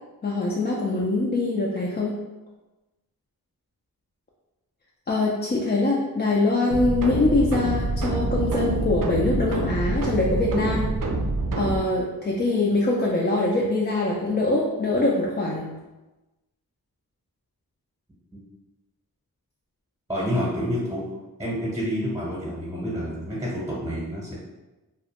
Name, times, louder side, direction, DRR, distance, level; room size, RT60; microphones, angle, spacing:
voice 1, 0.2-2.1 5.1-10.9 11.6-15.7, left 2 dB, 30° left, -4 dB, 0.3 m, -23 dB
sound 1, 6.7-11.8, right 2 dB, 60° right, 0.5 m, -26 dB
voice 2, 20.1-21.0 21.4-24.4, equal, 10° right, -7 dB, 0.8 m, -28 dB
2.3 x 2.1 x 2.8 m, 1.1 s
wide cardioid pair, 50°, 37 cm